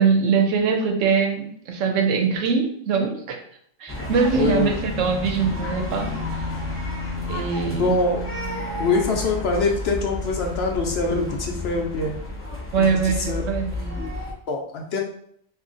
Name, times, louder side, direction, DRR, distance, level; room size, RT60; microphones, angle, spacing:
voice 1, 0.0-3.4 3.8-6.1 7.3-7.9 8.8-8.9 12.7-14.1, right 5 dB, 80° right, 3 dB, 1.0 m, -22 dB
sound 1, 3.9-14.3, left 2 dB, 15° left, 0.5 m, -31 dB
voice 2, 4.3-4.7 7.7-8.3 8.8-12.2 12.8-13.4 14.0-14.1 14.5-15.0, left 3 dB, 65° left, 1 dB, 0.8 m, -24 dB
2.8 x 2.4 x 3.7 m, 0.65 s
omnidirectional pair, 1.3 m